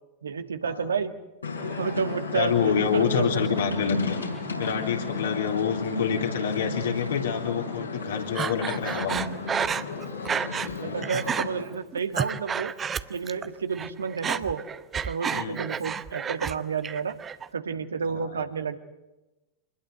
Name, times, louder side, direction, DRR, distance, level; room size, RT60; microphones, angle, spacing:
voice 1, 0.2-1.1 1.8-3.4 10.8-12.7 13.1-14.6 14.9-17.2 17.5-18.8, right 6 dB, 70° right, 9 dB, 1.6 m, -30 dB
sound 1, 1.4-11.6, left 4 dB, 80° left, 6.8 m, -34 dB
voice 2, 2.3-4.2 4.6-9.3 10.4-11.0 15.3-15.6 18.1-18.3, left 7 dB, 65° left, 2 dB, 3.6 m, -27 dB
Breathing, 8.4-10.7 11.0-11.5 11.9-13.5 13.7-16.6 16.8-17.5, right 7 dB, 20° right, 0.9 m, -30 dB
25.5 x 21.0 x 7.9 m, 1.0 s
figure-of-eight pair, 90°, 0 cm